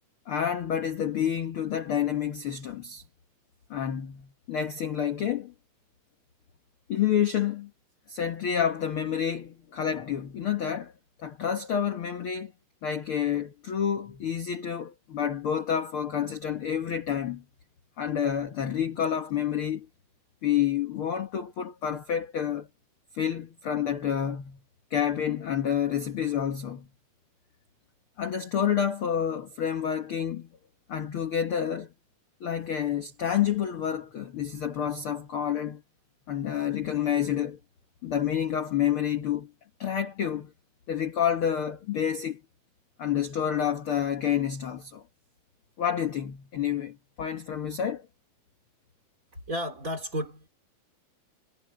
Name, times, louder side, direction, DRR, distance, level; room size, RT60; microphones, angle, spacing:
voice 1, 0.3-3.0 3.7-5.5 6.9-7.7 8.1-10.9 11.2-12.5 12.8-17.4 18.0-19.9 20.4-22.7 23.2-24.6 24.9-26.9 28.2-30.5 30.9-31.9 32.4-35.8 36.3-37.6 38.0-39.5 39.8-40.5 40.9-42.4 43.0-45.0 45.8-48.0, left 9 dB, 60° left, 1.5 m, -29 dB
voice 2, 49.5-50.5, equal, 25° right, 3.1 m, -32 dB
omnidirectional pair, 4.1 m